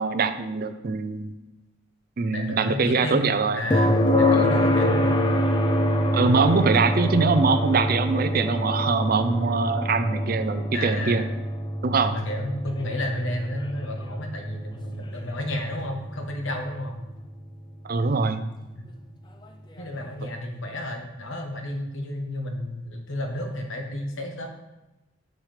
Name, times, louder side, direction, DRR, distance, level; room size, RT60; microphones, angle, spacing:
voice 1, 0.0-1.3 2.2-3.6 4.3-4.4 6.1-11.2 11.8-12.1 17.8-18.4, right 4 dB, 45° right, 10 dB, 0.4 m, -23 dB
voice 2, 2.3-5.2 10.7-11.4 12.1-17.0 19.8-24.5, left 1 dB, 70° left, 3 dB, 1.1 m, -32 dB
sound 1, 3.7-17.6 19.8-19.9, left 1 dB, 20° left, 0.4 m, -25 dB
6.4 x 6.3 x 3.3 m, 1.0 s
head